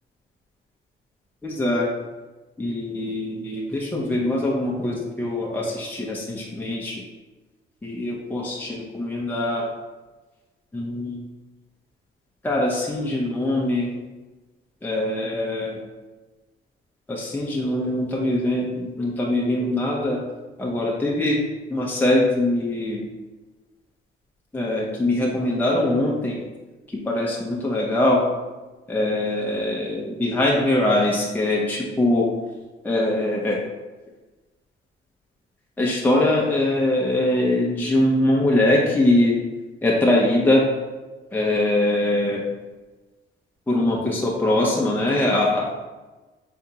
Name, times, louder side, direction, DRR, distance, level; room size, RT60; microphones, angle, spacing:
voice 1, 1.4-1.9 2.6-7.0 7.8-9.7 10.7-11.2 12.4-13.9 14.8-15.8 17.1-20.2 20.6-23.0 24.5-26.4 26.9-28.2 28.9-32.3 32.8-33.6 35.8-39.4 39.8-40.7 41.3-42.4 43.7-45.8, left 1 dB, 10° left, -3 dB, 0.7 m, -22 dB
5.0 x 3.3 x 2.8 m, 1.2 s
cardioid pair, 90°, 20 cm